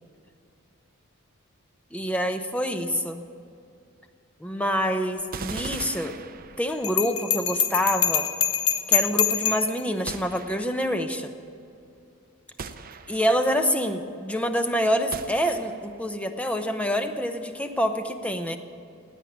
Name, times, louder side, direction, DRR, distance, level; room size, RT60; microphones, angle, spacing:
voice 1, 1.9-3.2 4.4-6.2 6.6-8.3 8.9-11.3 13.1-18.6, equal, 5° left, 7 dB, 0.8 m, -26 dB
sound 1, 5.3-7.0 10.1-10.9 12.6-13.5 15.1-16.0, right 4 dB, 45° right, 0.7 m, -39 dB
Bell, 6.8-9.8, left 8 dB, 85° left, 1.1 m, -24 dB
16.5 x 9.1 x 9.3 m, 2.6 s
head